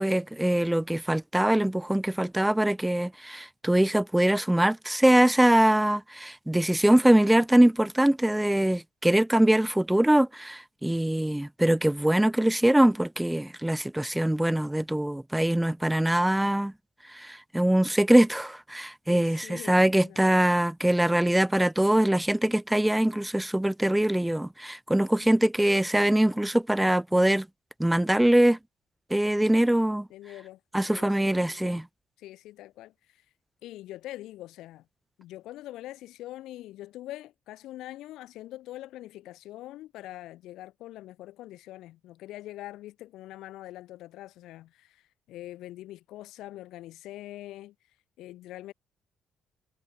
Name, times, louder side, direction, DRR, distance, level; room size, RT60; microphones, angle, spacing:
voice 1, 0.0-16.7 17.1-27.5 27.8-28.6 29.1-30.1 30.7-31.9, right 1 dB, 5° right, 3.6 m, -23 dB
voice 2, 19.1-20.4 30.1-30.6 30.9-31.8 32.2-32.9 33.6-34.8 35.2-45.0 45.3-47.7 48.2-48.7, left 15 dB, 90° left, 5.0 m, -43 dB
cardioid pair, 90°, 0 cm